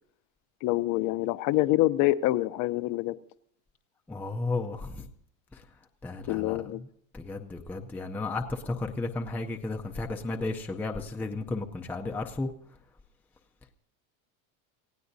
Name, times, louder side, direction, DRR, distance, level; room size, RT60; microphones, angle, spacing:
voice 1, 0.6-3.2 6.3-6.8, left 16 dB, 45° left, 15 dB, 0.6 m, -26 dB
voice 2, 4.1-5.1 5.5-5.6 6.0-6.6 7.1-12.5, left 3 dB, 5° left, 3 dB, 0.5 m, -33 dB
27.5 x 16.5 x 2.7 m, 0.68 s
cardioid pair, 165°, 42 cm